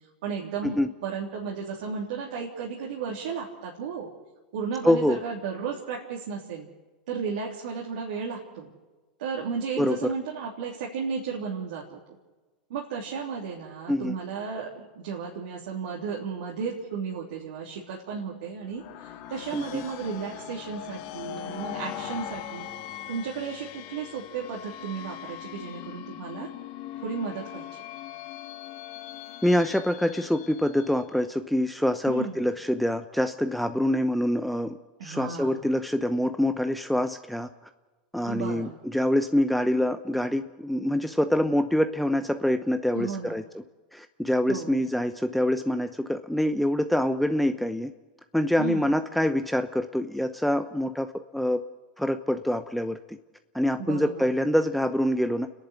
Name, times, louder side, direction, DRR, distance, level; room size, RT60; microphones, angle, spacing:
voice 1, 0.2-4.1 4.5-6.7 7.1-8.7 9.2-12.0 12.7-22.7 23.1-26.5 27.0-27.7 32.1-32.4 35.0-35.7 38.3-38.8 42.9-43.4 44.5-44.8 48.6-48.9 53.8-54.3, right 6 dB, 70° right, -3 dB, 3.4 m, -34 dB
voice 2, 4.8-5.2 9.8-10.1 13.9-14.1 19.5-19.8 29.4-37.5 38.1-43.4 43.9-47.9 48.3-51.6 52.0-53.2 53.5-55.5, left 1 dB, ahead, 8 dB, 0.8 m, -25 dB
sound 1, 18.7-31.2, left 11 dB, 55° left, 1.7 m, -40 dB
30.0 x 11.0 x 8.3 m, 1.2 s
hypercardioid pair, 105°, 5 cm